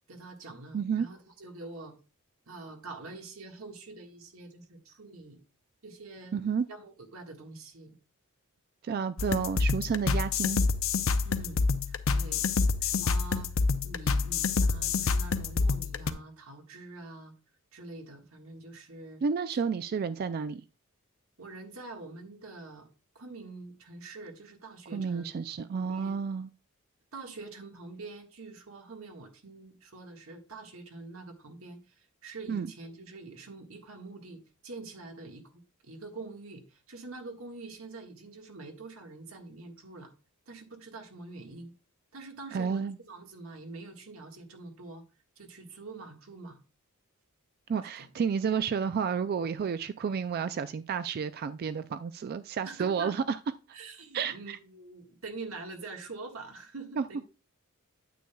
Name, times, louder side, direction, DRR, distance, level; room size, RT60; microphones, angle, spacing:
voice 1, 0.1-1.9 2.5-5.4 5.8-6.4 6.7-8.0 11.2-12.5 12.8-13.5 13.8-17.3 17.7-19.2 21.4-22.9 23.1-25.3 25.7-26.2 27.1-40.1 40.5-41.7 42.1-45.0 45.4-46.6 47.8-48.1 52.6-53.2 53.7-57.2, right 3 dB, 70° right, 1.6 m, -45 dB
voice 2, 0.7-1.1 6.3-6.7 8.8-10.6 19.2-20.6 24.9-26.5 32.5-32.7 42.5-43.0 47.7-53.4 54.1-54.6 57.0-57.2, right 6 dB, 45° right, 0.3 m, -31 dB
sound 1, 9.2-16.1, left 4 dB, 65° left, 0.6 m, -27 dB
9.2 x 8.5 x 2.3 m
head